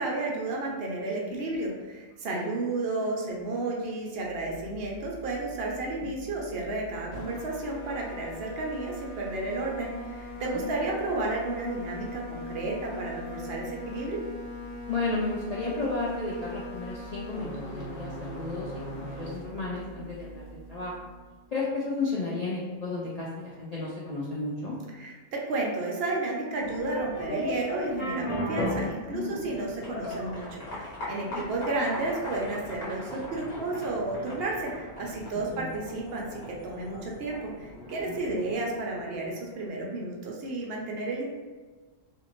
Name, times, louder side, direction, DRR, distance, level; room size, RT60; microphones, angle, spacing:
voice 1, 0.0-14.2 25.0-25.1 25.5-41.3, right 2 dB, 60° right, -2 dB, 0.8 m, -32 dB
voice 2, 1.2-1.8 2.3-2.5 6.0-6.1 10.5-10.7 14.9-20.9 21.5-24.7 29.1-29.4 31.3-31.4 35.5-35.7 38.1-38.4, left 3 dB, 70° left, -5 dB, 0.3 m, -33 dB
sound 1, 4.2-21.4, left 1 dB, 90° left, 1.1 m, -41 dB
sound 2, 26.6-39.4, equal, 50° left, 1.1 m, -37 dB
2.6 x 2.5 x 3.0 m, 1.3 s
omnidirectional pair, 1.3 m